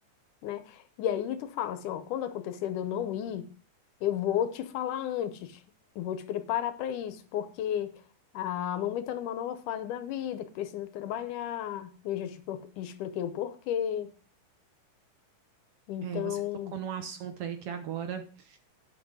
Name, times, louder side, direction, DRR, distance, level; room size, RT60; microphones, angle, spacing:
voice 1, 0.4-3.5 4.0-5.6 6.0-8.0 8.3-14.1 15.9-16.8, left 10 dB, 75° left, 2.3 m, -33 dB
voice 2, 16.0-16.4 16.7-18.6, right 8 dB, 65° right, 1.6 m, -37 dB
10.5 x 6.0 x 6.3 m
omnidirectional pair, 3.7 m